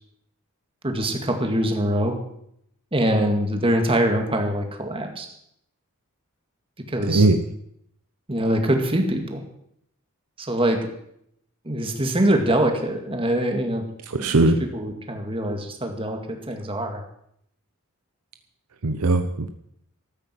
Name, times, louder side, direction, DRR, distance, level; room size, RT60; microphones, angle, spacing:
voice 1, 0.8-2.2 2.9-5.3 6.9-7.3 8.3-9.4 10.4-10.8 11.7-13.8 14.1-17.0, right 1 dB, 25° right, 4 dB, 2.0 m, -24 dB
voice 2, 7.1-7.4 14.1-14.5 18.8-19.5, right 2 dB, 80° right, 8 dB, 0.9 m, -19 dB
14.0 x 9.3 x 7.7 m, 0.73 s
head